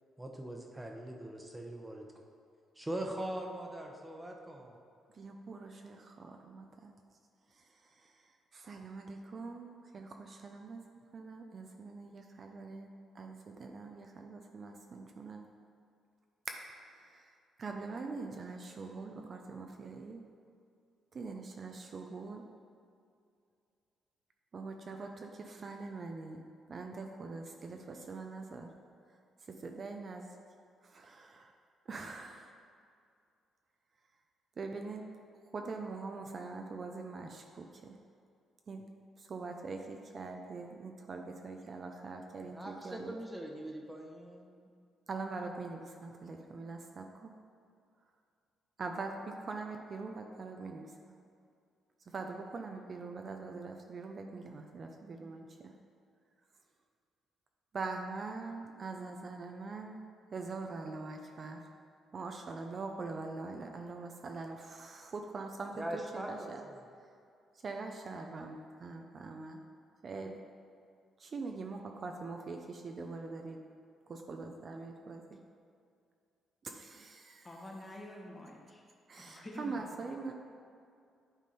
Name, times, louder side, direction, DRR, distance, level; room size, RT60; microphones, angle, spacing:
voice 1, 0.2-2.0 2.7-4.8 42.5-44.7 65.7-66.8, right 1 dB, 15° right, 1 dB, 1.0 m, -41 dB
voice 2, 5.1-6.9 7.5-10.8 11.1-15.5 16.5-17.3 17.6-20.2 21.1-22.4 24.5-28.7 29.6-30.3 30.8-31.5 31.9-32.5 34.6-35.0 35.5-38.0 38.7-38.9 39.2-43.1 45.1-47.3 48.8-51.1 52.1-55.4 57.7-60.0 60.3-61.6 62.1-66.6 67.6-69.6 70.0-70.4 71.2-73.6 74.1-75.4 76.6-77.5 79.1-80.3, right 3 dB, 45° right, 3 dB, 0.6 m, -43 dB
voice 3, 77.4-78.9 79.2-80.1, left 1 dB, 20° left, -1 dB, 1.3 m, -47 dB
10.5 x 3.7 x 4.2 m, 2.4 s
cardioid pair, 90°, 0 cm